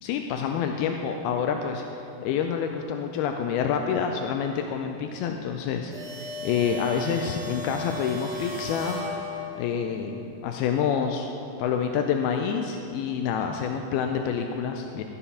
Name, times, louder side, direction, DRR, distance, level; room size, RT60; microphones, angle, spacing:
voice 1, 0.0-1.8 2.2-9.1 9.6-11.3 11.6-15.0, left 7 dB, 85° left, 4 dB, 2.4 m, -27 dB
sound 1, 5.9-9.8, left 2 dB, 60° right, 2.4 m, -36 dB
12.0 x 7.0 x 5.5 m, 2.8 s
omnidirectional pair, 4.4 m